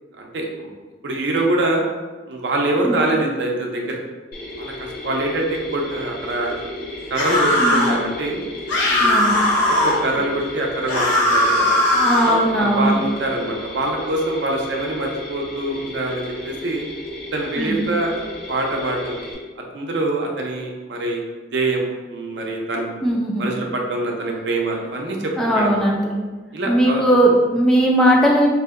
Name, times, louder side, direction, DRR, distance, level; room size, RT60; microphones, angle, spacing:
voice 1, 0.2-0.7 1.0-1.8 2.3-4.0 4.6-6.5 7.1-8.4 8.9-9.3 9.8-11.7 12.2-16.8 17.3-18.1 18.5-19.2 19.7-21.2 21.5-22.9 23.4-25.9 26.5-27.0, right 2 dB, 70° right, 0 dB, 0.6 m, -24 dB
Mechanisms, 4.3-19.3, left 2 dB, 55° left, 0.8 m, -34 dB
sound 1, 7.1-8.0 8.7-10.0 10.9-12.4, left 1 dB, 85° left, 0.8 m, -18 dB
voice 2, 7.6-7.9 9.0-9.3 11.9-13.0 17.6-17.8 23.0-23.4 25.4-26.1 26.7-28.5, right 1 dB, 5° left, -3 dB, 0.3 m, -18 dB
2.6 x 2.1 x 3.6 m, 1.3 s
head